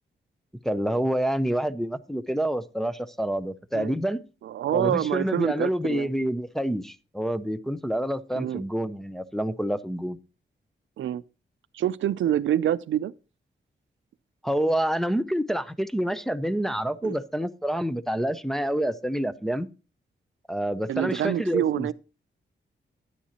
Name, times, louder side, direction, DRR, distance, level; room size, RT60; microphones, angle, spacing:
voice 1, 0.6-4.2 4.7-10.2 14.4-19.7 20.5-21.9, right 1 dB, ahead, 0.5 m, -27 dB
voice 2, 4.4-6.1 8.3-8.6 11.0-11.2 11.7-13.1 17.0-17.2 20.9-21.9, right 11 dB, 80° right, 0.4 m, -26 dB
10.0 x 9.7 x 2.8 m
wide cardioid pair, 110°, 20 cm